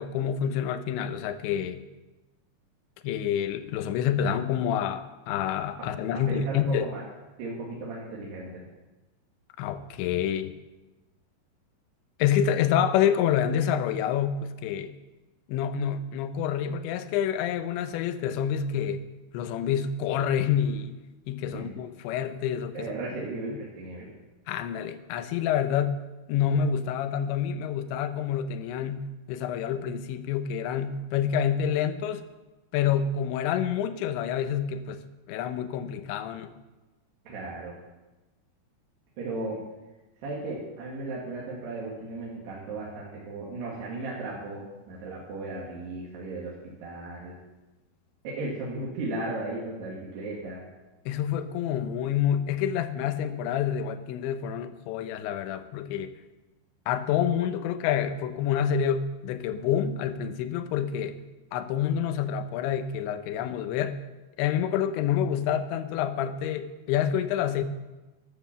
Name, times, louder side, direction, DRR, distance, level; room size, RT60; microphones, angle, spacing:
voice 1, 0.0-1.9 3.0-6.9 9.6-10.6 12.2-14.9 15.5-19.1 19.3-21.0 21.3-22.9 24.5-32.3 32.7-36.5 51.1-56.1 56.9-61.2 61.5-64.0 64.4-67.6, left 8 dB, 90° left, 11 dB, 3.1 m, -28 dB
voice 2, 6.3-7.0 7.4-8.6 21.5-21.7 22.7-24.1 37.3-37.7 39.2-39.6 40.2-46.5 46.8-47.3 48.2-50.6, right 2 dB, 70° right, -5 dB, 4.2 m, -35 dB
12.5 x 10.0 x 7.3 m, 1.1 s
omnidirectional pair, 5.1 m